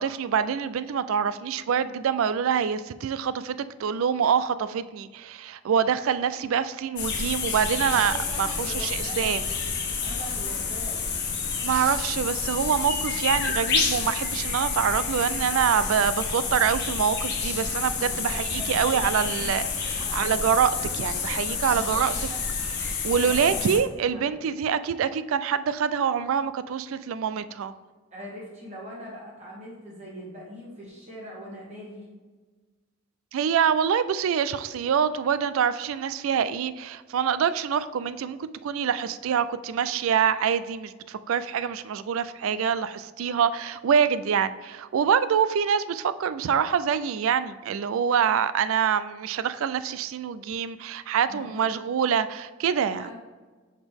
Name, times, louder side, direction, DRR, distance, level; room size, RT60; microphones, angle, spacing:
voice 1, 0.0-9.4 11.6-22.1 22.8-27.7 33.3-53.1, right 7 dB, 70° right, 14 dB, 0.3 m, -25 dB
sound 1, 7.0-23.8, left 5 dB, 55° left, 1.0 m, -29 dB
voice 2, 7.8-9.6 10.0-11.1 18.1-20.5 21.7-22.4 23.2-24.4 28.1-32.1 51.3-51.7 53.0-53.2, equal, 30° right, -6 dB, 1.3 m, -42 dB
6.1 x 5.0 x 3.5 m, 1.3 s
head